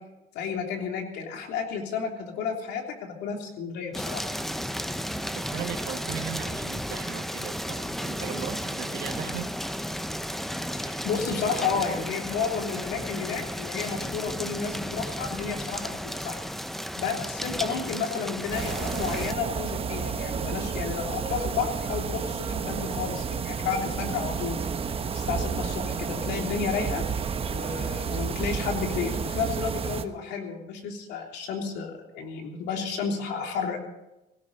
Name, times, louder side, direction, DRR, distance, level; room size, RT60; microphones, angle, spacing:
voice 1, 0.3-4.3 10.7-16.4 17.0-24.6 25.1-27.0 27.5-33.8, left 6 dB, 85° left, 2 dB, 3.2 m, -32 dB
sound 1, 3.9-19.3, equal, ahead, 0.8 m, -33 dB
voice 2, 5.3-9.5, right 10 dB, 75° right, 4 dB, 2.0 m, -38 dB
sound 2, 18.5-30.0, right 6 dB, 35° right, 1.1 m, -31 dB
19.0 x 17.0 x 4.1 m, 0.95 s
cardioid pair, 110°, 17 cm